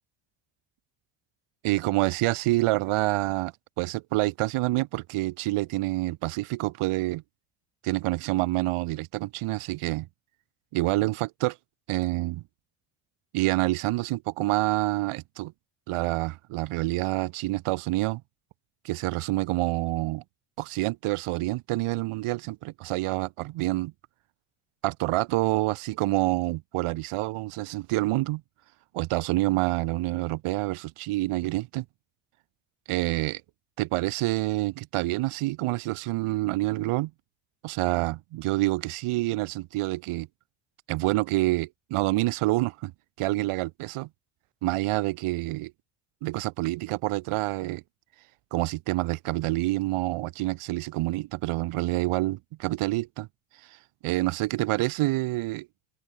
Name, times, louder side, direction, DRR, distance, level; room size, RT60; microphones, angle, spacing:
voice 1, 1.6-3.5 3.8-7.2 7.8-10.1 10.7-11.6 11.9-12.4 13.3-15.5 15.9-18.2 18.8-20.2 20.6-23.9 24.8-28.4 28.9-31.8 32.9-33.4 33.8-37.1 37.6-40.3 40.9-42.9 43.2-44.1 44.6-45.7 46.2-47.8 48.5-53.3 54.0-55.7, right 19 dB, 80° right, 5.0 m, -27 dB
cardioid pair, 110°, 50 cm